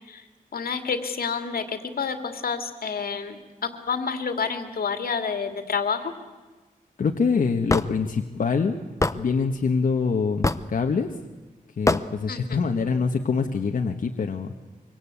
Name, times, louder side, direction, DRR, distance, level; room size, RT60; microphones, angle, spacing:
voice 1, 0.5-6.1 12.3-12.6, left 5 dB, 85° left, 7 dB, 2.5 m, -29 dB
voice 2, 7.0-8.7 9.1-11.1 11.8-14.5, left 5 dB, 70° left, 3 dB, 1.3 m, -25 dB
Hammer / Wood, 7.7-7.9 9.0-9.2 10.4-10.7 11.9-12.1, left 2 dB, 20° left, 0.9 m, -22 dB
25.5 x 24.5 x 8.5 m, 1.3 s
wide cardioid pair, 125°, 15 cm